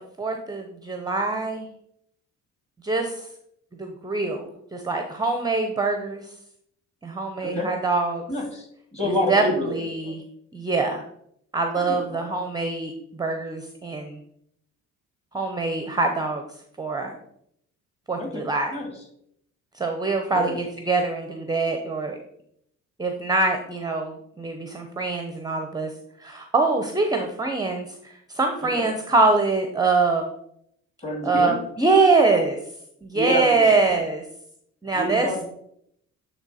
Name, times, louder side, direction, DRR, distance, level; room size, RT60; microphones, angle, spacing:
voice 1, 0.2-1.7 2.8-3.3 3.8-6.3 7.0-8.2 9.0-10.2 10.5-11.0 11.5-12.9 13.2-14.2 15.3-16.4 16.8-17.1 18.1-18.7 19.7-22.2 23.0-25.9 26.2-30.3 31.2-32.6 33.0-34.2 34.8-35.4, right 3 dB, 10° right, 4 dB, 0.6 m, -24 dB
voice 2, 8.3-10.1 11.8-12.2 18.2-18.4 18.7-18.9 20.3-20.6 28.7-28.8 31.0-31.6 33.1-33.8 34.9-35.4, left 1 dB, 20° left, 0 dB, 2.2 m, -28 dB
8.8 x 3.3 x 4.1 m, 0.72 s
cardioid pair, 115°, 32 cm